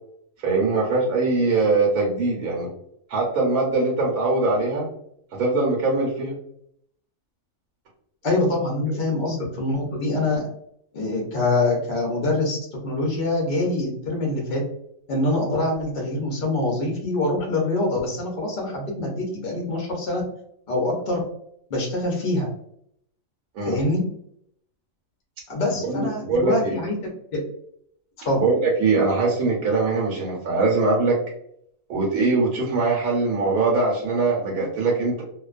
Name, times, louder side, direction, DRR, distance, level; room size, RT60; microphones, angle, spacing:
voice 1, 0.4-2.7 3.1-4.9 5.4-6.3 8.9-9.0 23.6-23.8 25.8-26.7 28.4-31.2 31.9-35.2, right 3 dB, 90° right, -3 dB, 1.1 m, -22 dB
voice 2, 8.2-10.5 10.9-12.6 12.8-14.6 15.1-20.2 20.7-21.2 21.7-22.5 23.6-24.1 25.5-27.4 28.2-28.4, left 2 dB, 50° left, -2 dB, 0.7 m, -24 dB
2.5 x 2.2 x 2.3 m, 0.71 s
omnidirectional pair, 1.5 m